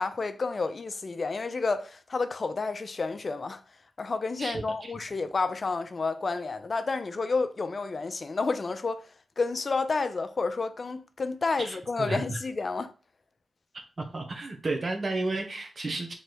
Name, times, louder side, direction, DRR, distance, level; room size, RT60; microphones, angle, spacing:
voice 1, 0.0-3.6 4.0-9.1 9.4-12.9, left 4 dB, 55° left, 0.5 m, -30 dB
voice 2, 4.4-4.9 11.6-12.4 14.0-16.1, right 2 dB, 55° right, 1.0 m, -32 dB
3.3 x 3.2 x 4.2 m
cardioid pair, 50°, 0 cm